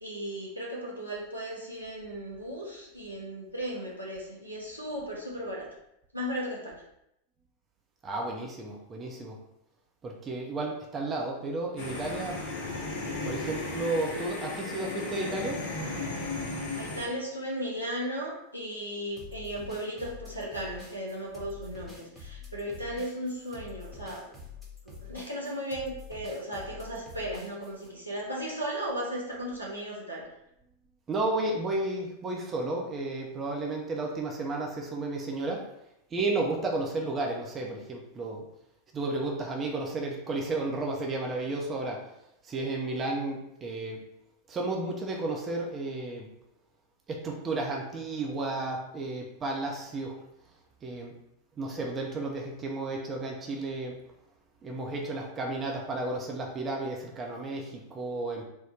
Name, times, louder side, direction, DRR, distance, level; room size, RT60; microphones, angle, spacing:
voice 1, 0.0-5.7 6.1-6.8 16.7-24.3 24.8-30.2, equal, 90° right, -5 dB, 1.0 m, -36 dB
voice 2, 8.0-9.4 10.0-12.4 13.2-15.6 31.1-35.7 36.1-38.4 38.9-42.0 42.4-44.1 44.5-46.3 47.1-50.1 50.8-51.2 51.6-54.0 54.6-58.4, right 2 dB, 25° right, -1 dB, 0.6 m, -32 dB
sound 1, 11.8-17.1, left 3 dB, 55° left, 0.8 m, -35 dB
sound 2, 19.2-27.9, left 5 dB, 5° left, 1.1 m, -46 dB
3.7 x 2.2 x 4.3 m, 0.81 s
figure-of-eight pair, 90°, 0 cm